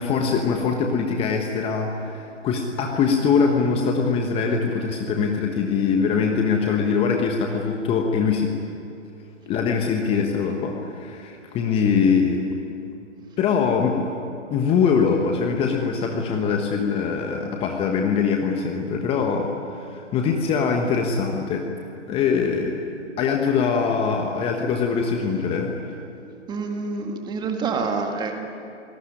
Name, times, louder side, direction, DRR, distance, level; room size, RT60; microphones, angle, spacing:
voice 1, 0.0-8.5 9.5-12.4 13.4-14.1 14.5-21.7 22.1-22.8 23.2-25.8, left 5 dB, 15° left, 3 dB, 1.4 m, -22 dB
voice 2, 26.1-28.6, right 4 dB, 10° right, 4 dB, 1.9 m, -28 dB
27.0 x 18.5 x 9.9 m, 2.6 s
figure-of-eight pair, 130°, 37 cm